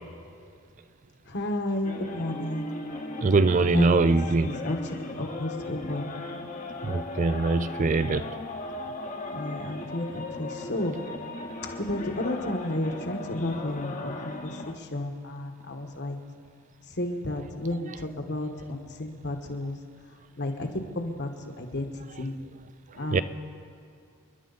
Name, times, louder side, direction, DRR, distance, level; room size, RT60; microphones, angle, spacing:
voice 1, 1.3-2.9 3.6-4.2 4.4-4.8 5.2-6.1 9.3-11.0 11.8-16.2 17.0-19.8 20.4-20.7 20.9-21.3 21.6-21.9 22.2-22.3 22.9-23.2, left 1 dB, 50° left, 4 dB, 1.5 m, -32 dB
sound 1, 1.8-14.7, left 2 dB, 35° left, 1.1 m, -37 dB
voice 2, 3.2-4.5 6.9-8.3 23.1-23.2, right 3 dB, 35° right, 14 dB, 0.4 m, -22 dB
29.0 x 11.0 x 4.1 m, 2.3 s
head